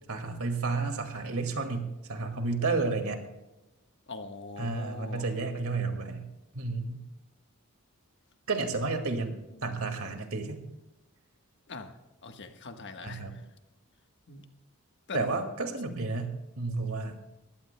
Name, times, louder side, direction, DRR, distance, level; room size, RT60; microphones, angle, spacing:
voice 1, 0.1-3.2 4.6-6.3 6.5-7.0 8.5-10.6 13.0-13.3 15.1-17.2, right 3 dB, 75° right, 5 dB, 2.1 m, -31 dB
voice 2, 4.1-5.3 11.7-11.9 12.2-13.4 14.3-14.4 15.1-15.2, left 3 dB, 55° left, 6 dB, 1.3 m, -42 dB
21.5 x 16.0 x 2.2 m, 1.0 s
head